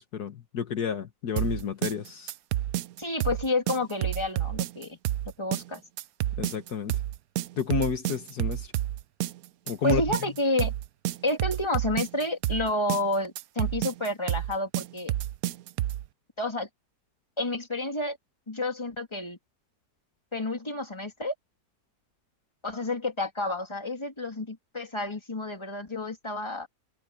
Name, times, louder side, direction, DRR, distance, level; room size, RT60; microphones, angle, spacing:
voice 1, 0.0-2.3 6.4-7.0 7.6-8.7 9.7-10.0, left 6 dB, 70° left, 1.8 m, -30 dB
sound 1, 1.4-16.1, right 14 dB, 70° right, 0.9 m, -30 dB
voice 2, 3.0-5.0 5.4-5.8 9.8-10.7 11.2-15.1 16.4-16.7 17.4-18.2 18.5-19.4 20.3-21.3 22.6-26.7, left 2 dB, 15° left, 2.9 m, -30 dB
omnidirectional pair, 1.8 m